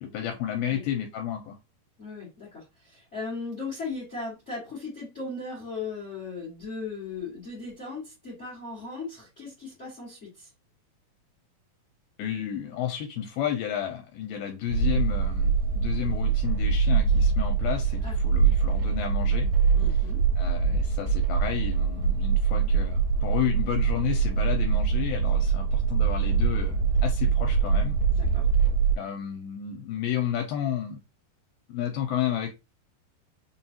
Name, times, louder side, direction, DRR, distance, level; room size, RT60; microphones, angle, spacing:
voice 1, 0.0-1.6 12.2-19.5 20.4-28.0 29.0-31.0 31.7-32.5, left 10 dB, 80° left, 2.4 m, -31 dB
voice 2, 2.0-10.5 18.0-18.2 19.7-20.2 28.1-28.5, left 4 dB, 60° left, 0.7 m, -37 dB
sound 1, 14.7-28.9, right 5 dB, 85° right, 2.5 m, -24 dB
5.8 x 2.3 x 2.7 m
omnidirectional pair, 4.4 m